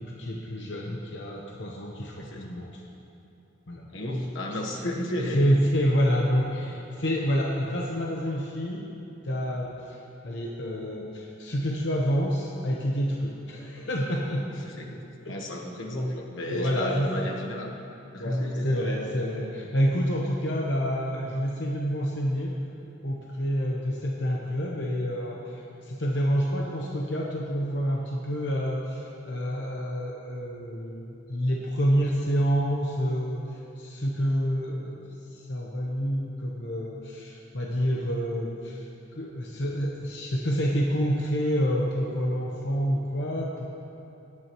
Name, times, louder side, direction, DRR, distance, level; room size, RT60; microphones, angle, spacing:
voice 1, 0.0-2.7 3.7-3.9 4.5-4.6 5.2-8.9 9.2-10.0 10.2-14.4 15.2-15.4 16.5-17.3 18.2-22.5 23.0-33.4 33.8-35.0 35.4-43.9, equal, 60° left, -2 dB, 0.9 m, -28 dB
voice 2, 2.2-2.5 3.9-5.6 14.6-17.7 18.1-18.8, left 1 dB, 80° left, 0 dB, 1.3 m, -32 dB
17.0 x 9.7 x 3.1 m, 2.8 s
head